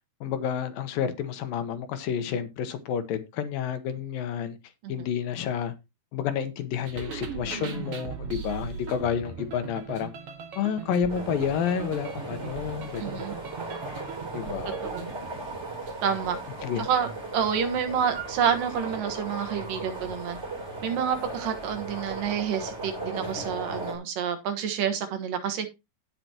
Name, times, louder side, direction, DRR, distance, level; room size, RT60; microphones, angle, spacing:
voice 1, 0.2-4.6 4.9-5.7 6.1-10.1 10.6-13.2 14.3-14.8 16.6-16.9, left 8 dB, 70° left, 2.7 m, -30 dB
sound 1, 6.8-16.0, right 6 dB, 50° right, 2.2 m, -39 dB
sound 2, 11.1-24.0, right 2 dB, 20° right, 3.5 m, -37 dB
voice 2, 13.0-13.3 14.8-15.1 16.0-16.4 16.8-17.1 17.3-20.4 20.8-25.7, right 8 dB, 70° right, 2.9 m, -28 dB
17.5 x 5.9 x 2.9 m
omnidirectional pair, 4.3 m